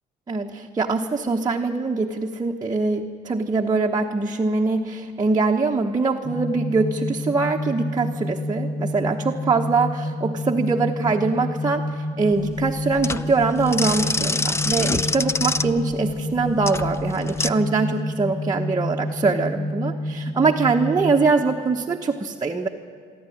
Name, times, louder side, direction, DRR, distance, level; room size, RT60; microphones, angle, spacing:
voice 1, 0.3-22.7, right 4 dB, 25° right, 1 dB, 1.1 m, -23 dB
sound 1, 6.2-21.3, left 1 dB, 50° left, 2.2 m, -29 dB
sound 2, 12.3-17.5, left 3 dB, 15° left, 0.6 m, -26 dB
26.5 x 12.0 x 10.0 m, 2.4 s
cardioid pair, 110°, 17 cm